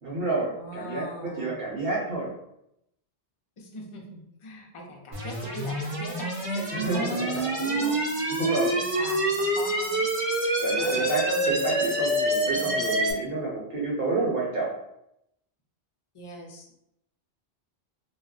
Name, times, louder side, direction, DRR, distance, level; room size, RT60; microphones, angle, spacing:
voice 1, 0.0-2.3 6.7-7.0 7.3-7.4 7.7-7.9 8.4-8.7 10.6-14.7, right 3 dB, 60° right, -4 dB, 1.0 m, -29 dB
voice 2, 0.5-1.6 3.6-8.4 8.7-10.1 10.8-11.9 12.5-12.8 16.1-16.7, left 1 dB, 45° left, 0 dB, 0.4 m, -40 dB
sound 1, 5.1-13.1, right 1 dB, 45° right, 0.5 m, -26 dB
2.2 x 2.1 x 3.6 m, 0.79 s
omnidirectional pair, 1.1 m